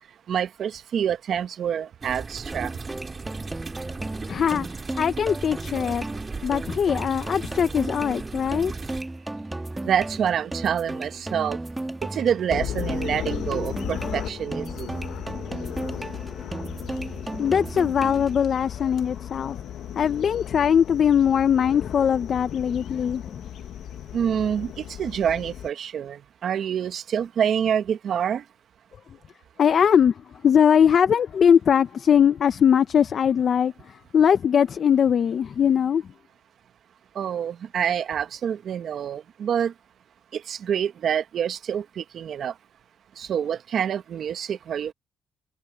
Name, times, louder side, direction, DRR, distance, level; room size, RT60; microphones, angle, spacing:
voice 1, 0.3-2.7 9.8-11.6 12.1-14.9 24.1-28.4 37.1-39.7 40.3-42.5 43.2-44.9, right 8 dB, 65° right, 1.0 m, -27 dB
sound 1, 2.0-9.0, right 4 dB, 30° right, 2.8 m, -37 dB
sound 2, 2.5-18.5, right 2 dB, 15° right, 1.7 m, -35 dB
voice 2, 4.3-4.7 5.0-6.1 6.4-8.7 17.4-19.6 20.0-23.4 29.6-36.0, left 8 dB, 55° left, 0.8 m, -21 dB
sound 3, 12.5-25.7, left 10 dB, 75° left, 1.5 m, -36 dB
cardioid pair, 90°, 0 cm